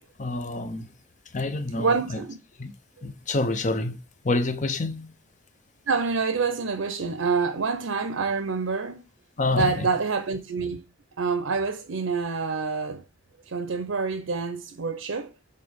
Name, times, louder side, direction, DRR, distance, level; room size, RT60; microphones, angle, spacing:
voice 1, 0.2-0.9 1.3-2.2 2.6-2.7 3.0-4.0 4.2-5.1 9.4-9.9, left 2 dB, 35° left, 0.6 m, -27 dB
voice 2, 1.8-2.4 5.9-9.0 9.5-10.8 11.2-13.0 13.5-15.3, right 4 dB, 75° right, 0.7 m, -27 dB
6.8 x 3.4 x 5.1 m
head